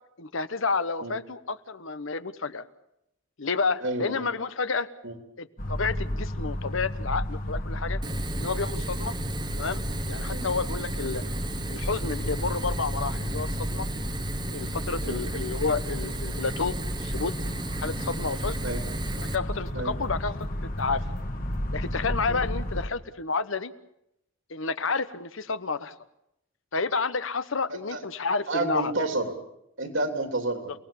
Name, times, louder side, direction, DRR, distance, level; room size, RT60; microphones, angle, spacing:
voice 1, 0.2-2.6 3.4-4.9 5.4-8.0 8.3-9.2 9.6-9.8 10.1-11.2 11.7-13.9 14.5-17.3 17.8-18.6 19.2-20.5 20.8-21.0 21.7-23.7 24.5-25.9 26.7-28.9, left 4 dB, 75° left, 13 dB, 1.1 m, -30 dB
voice 2, 3.8-4.2 5.0-5.2 10.3-10.5 15.0-15.2 18.6-18.8 19.7-19.9 22.3-22.4 27.7-28.0 28.5-29.3 29.8-30.7, right 2 dB, 70° right, 5 dB, 3.2 m, -30 dB
sound 1, 5.6-22.9, equal, 45° left, 1.9 m, -32 dB
Fire, 8.0-19.3, right 2 dB, 20° right, 1.0 m, -36 dB
sound 2, 16.7-16.8 17.3-17.4 17.8-18.9 19.3-19.4 19.7-19.8 20.3-20.4 20.8-21.2 21.5-21.7, right 1 dB, 35° right, 2.1 m, -42 dB
29.5 x 18.5 x 7.1 m, 0.83 s
head